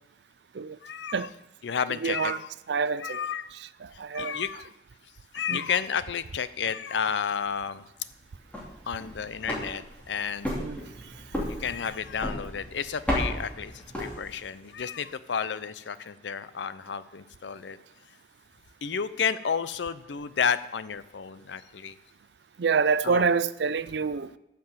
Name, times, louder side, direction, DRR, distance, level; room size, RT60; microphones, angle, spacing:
voice 1, 0.8-1.3 1.6-2.5 3.0-3.5 3.9-4.7 5.3-7.8 8.9-10.5 11.5-17.8 18.8-22.0 23.0-23.2, left 7 dB, 85° left, 0.6 m, -31 dB
voice 2, 2.0-2.4 2.7-3.2 3.8-4.4 5.5-5.6 10.6-10.8 22.6-24.3, right 5 dB, 70° right, 0.4 m, -26 dB
sound 1, 8.3-14.6, equal, 10° left, 2.5 m, -34 dB
11.5 x 6.0 x 7.3 m
head